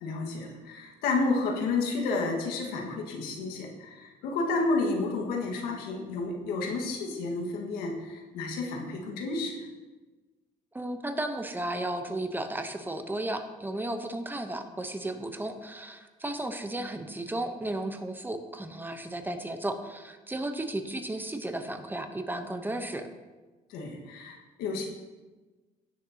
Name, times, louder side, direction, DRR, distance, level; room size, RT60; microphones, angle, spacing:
voice 1, 0.0-9.7 23.7-24.9, left 3 dB, 85° left, 1 dB, 1.7 m, -31 dB
voice 2, 10.7-23.1, right 1 dB, 10° right, 7 dB, 0.9 m, -34 dB
16.5 x 6.7 x 2.9 m, 1.3 s
cardioid pair, 90°, 16 cm